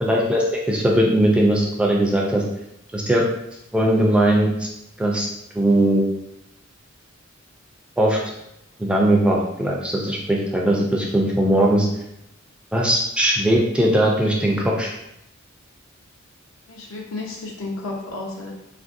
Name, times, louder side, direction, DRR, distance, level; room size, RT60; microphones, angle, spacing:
voice 1, 0.0-2.4 2.9-3.2 3.7-4.7 5.0-5.3 5.5-6.0 8.0-8.2 8.8-11.9 12.7-14.9, right 1 dB, 5° right, -2 dB, 0.3 m, -19 dB
voice 2, 16.7-18.5, left 2 dB, 75° left, -2 dB, 0.8 m, -32 dB
3.4 x 2.5 x 2.5 m, 0.82 s
head